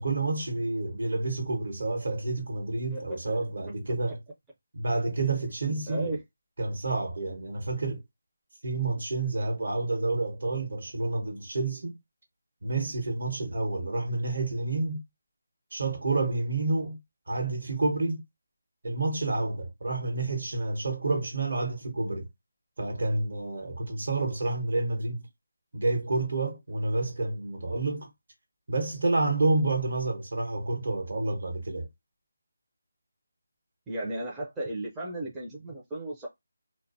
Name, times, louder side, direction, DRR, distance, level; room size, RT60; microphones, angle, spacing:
voice 1, 0.0-4.2 4.7-6.1 6.6-8.0 8.6-12.0 12.6-15.0 15.7-17.0 17.3-18.2 18.8-22.3 22.8-25.3 25.7-28.1 28.7-31.9, right 2 dB, 65° right, 1.0 m, -29 dB
voice 2, 2.9-3.4 5.9-6.2 33.9-36.3, right 1 dB, 10° right, 0.5 m, -35 dB
2.5 x 2.2 x 2.6 m
figure-of-eight pair, 165°, 0 cm